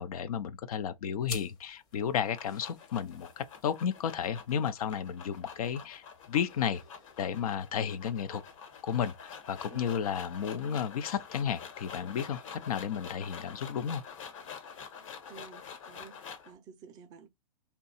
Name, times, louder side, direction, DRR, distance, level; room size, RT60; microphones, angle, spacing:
voice 1, 0.0-6.8 7.2-8.4 8.8-14.0, left 8 dB, 75° left, 0.6 m, -33 dB
sound 1, 1.2-10.2, left 5 dB, 20° left, 0.7 m, -52 dB
sound 2, 1.9-16.5, left 6 dB, 60° left, 1.2 m, -47 dB
voice 2, 15.3-17.3, right 6 dB, 20° right, 0.4 m, -52 dB
2.8 x 2.3 x 4.0 m
hypercardioid pair, 150°, 19 cm